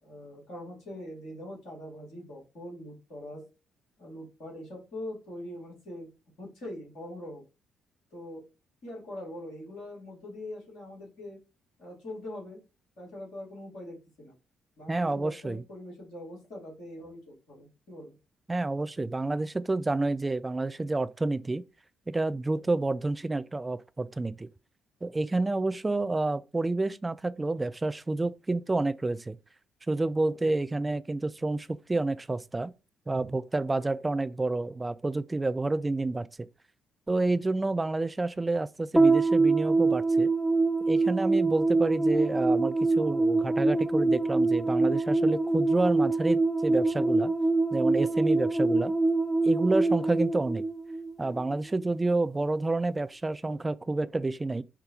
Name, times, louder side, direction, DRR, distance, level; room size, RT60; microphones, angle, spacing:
voice 1, 0.0-3.5 4.0-6.1 6.4-7.4 8.1-8.4 8.8-11.4 11.8-12.6 13.0-14.3 14.8-18.1, left 1 dB, 65° left, 1.9 m, -42 dB
voice 2, 14.9-15.6 18.5-21.6 22.1-24.5 25.0-29.4 29.9-32.7 33.1-36.3 37.1-40.3 40.9-47.3 47.7-48.9 49.4-50.6 51.2-54.6, right 2 dB, 20° right, 0.3 m, -29 dB
sound 1, 39.0-51.5, right 3 dB, ahead, 0.9 m, -25 dB
4.8 x 2.2 x 3.0 m
figure-of-eight pair, 40°, 0 cm